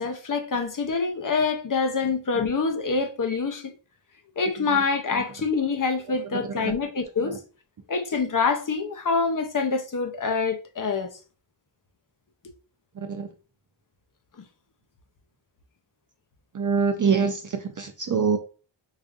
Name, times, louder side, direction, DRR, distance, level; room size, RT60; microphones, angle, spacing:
voice 1, 0.0-3.7 4.4-7.4 7.9-11.1, left 4 dB, 45° left, 0.7 m, -26 dB
voice 2, 6.3-6.7 7.2-7.4 13.0-13.3 16.5-18.4, right 5 dB, 45° right, 0.4 m, -25 dB
4.8 x 2.7 x 2.4 m
wide cardioid pair, 85°, 45 cm